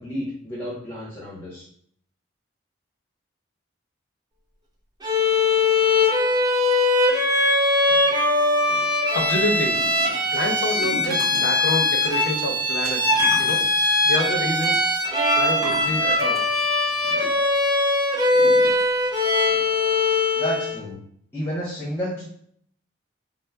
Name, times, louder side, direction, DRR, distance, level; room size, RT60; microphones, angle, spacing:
voice 1, 0.0-1.7 20.3-21.0 21.3-22.2, equal, 10° left, -8 dB, 0.9 m, -30 dB
Bowed string instrument, 5.0-20.8, left 2 dB, 20° right, 0.5 m, -21 dB
sound 1, 8.4-8.5 8.8-17.6 18.3-19.1 19.5-19.6 19.9-20.0, right 1 dB, 50° right, 1.2 m, -40 dB
voice 2, 8.7-9.8 10.2-14.8 15.4-16.6, left 1 dB, 75° left, 2 dB, 0.6 m, -28 dB
5.2 x 2.0 x 2.2 m, 0.63 s
head